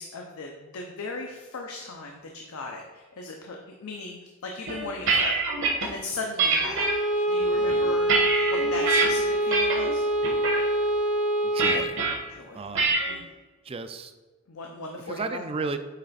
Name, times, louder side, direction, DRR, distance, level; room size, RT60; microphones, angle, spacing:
voice 1, 0.0-5.3 5.8-6.9 7.3-8.1 8.4-10.1 12.3-12.6 13.1-13.2 14.5-15.8, left 3 dB, 80° left, 1 dB, 0.6 m, -37 dB
sound 1, 4.7-5.9 6.4-6.9 7.5-9.1 9.5-9.9 10.2-10.6 11.6-12.1 12.8-13.1, right 4 dB, 60° right, 1.2 m, -25 dB
Bowed string instrument, 6.7-11.9, right 1 dB, 35° left, 0.7 m, -25 dB
voice 2, 11.5-12.2 12.5-12.9 13.7-14.1 15.1-15.8, right 4 dB, 25° right, 9 dB, 0.3 m, -33 dB
8.3 x 3.3 x 4.1 m, 1.3 s
head